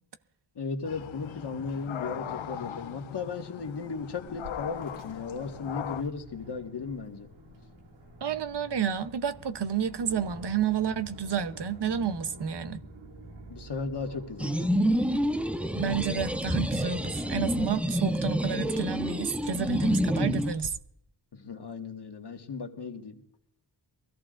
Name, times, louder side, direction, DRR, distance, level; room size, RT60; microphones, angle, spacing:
voice 1, 0.6-7.3 13.5-14.7 21.3-23.2, left 4 dB, 60° left, 1.7 m, -36 dB
sound 1, 0.8-6.0, left 10 dB, 90° left, 0.8 m, -39 dB
Aircraft, 4.3-20.7, right 1 dB, 75° right, 2.3 m, -49 dB
voice 2, 8.2-12.8 15.7-20.8, right 7 dB, 60° right, 0.9 m, -30 dB
sound 2, 14.4-20.5, equal, 5° right, 0.5 m, -28 dB
23.5 x 14.5 x 2.5 m
wide cardioid pair, 90°, 46 cm